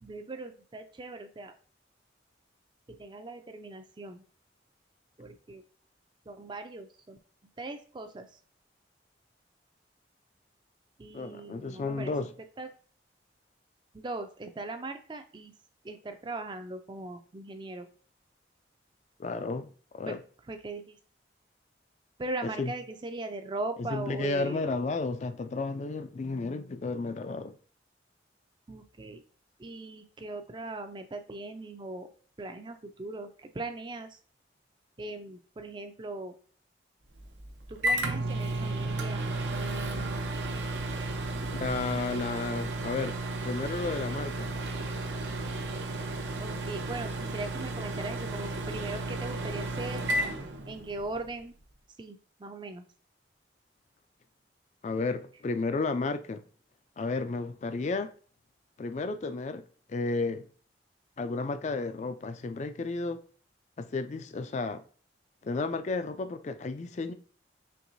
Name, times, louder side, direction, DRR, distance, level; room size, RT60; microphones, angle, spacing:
voice 1, 0.0-1.6 2.9-4.2 5.2-5.6 6.3-7.2 7.6-8.3 11.0-12.1 12.6-12.7 13.9-15.5 15.8-17.9 20.1-20.2 20.5-21.0 22.2-24.6 28.7-29.2 29.6-32.1 32.4-34.2 35.0-36.3 37.7-39.3 41.3-41.5 46.4-50.1 50.7-51.5 52.0-52.8, right 2 dB, 25° right, 0.4 m, -39 dB
voice 2, 11.1-12.3 19.2-19.7 19.9-20.2 22.4-22.7 23.8-27.6 41.6-44.5 54.8-56.4 57.0-58.1 58.8-60.5 61.2-63.2 63.8-64.8 65.4-67.1, left 3 dB, 40° left, 0.3 m, -32 dB
Microwave oven, 37.2-51.2, right 2 dB, 80° right, 0.7 m, -33 dB
4.5 x 3.1 x 2.6 m
head